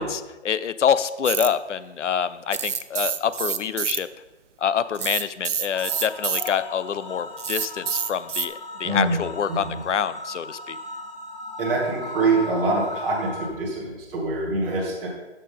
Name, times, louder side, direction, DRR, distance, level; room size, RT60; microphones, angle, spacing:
voice 1, 0.0-4.1 4.6-10.8, left 8 dB, 80° left, 15 dB, 0.6 m, -26 dB
sound 1, 1.2-1.5 2.5-4.0 4.9-6.5 7.4-8.5, right 8 dB, 85° right, 0.7 m, -27 dB
sound 2, 5.7-13.5, left 3 dB, 35° left, 1.2 m, -38 dB
voice 2, 8.8-9.2 9.5-9.8 11.6-15.1, right 3 dB, 5° right, -8 dB, 0.8 m, -25 dB
12.0 x 6.6 x 3.7 m, 1.1 s
hypercardioid pair, 165°, 36 cm